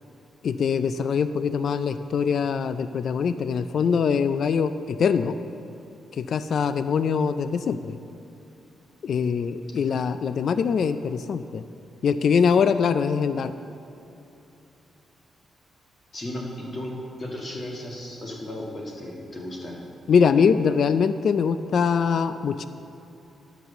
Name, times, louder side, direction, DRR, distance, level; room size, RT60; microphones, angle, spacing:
voice 1, 0.4-5.4 6.1-8.0 9.0-11.6 12.0-13.5 20.1-22.7, left 6 dB, 50° left, 11 dB, 0.3 m, -23 dB
voice 2, 16.1-19.8, left 1 dB, 30° left, -2 dB, 1.8 m, -35 dB
11.0 x 6.1 x 6.8 m, 2.9 s
wide cardioid pair, 155°, 0 cm